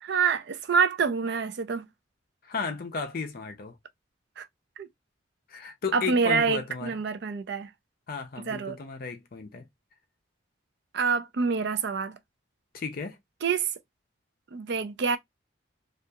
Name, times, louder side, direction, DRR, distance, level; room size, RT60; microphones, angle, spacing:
voice 1, 0.0-1.8 4.4-4.5 4.8-4.9 5.9-7.7 8.5-8.8 10.9-12.2 13.4-13.7 14.5-15.2, right 5 dB, 55° right, 0.4 m, -26 dB
voice 2, 2.4-3.8 5.5-7.0 8.1-9.7 12.7-13.2, left 4 dB, 45° left, 0.5 m, -34 dB
2.8 x 2.4 x 2.2 m
head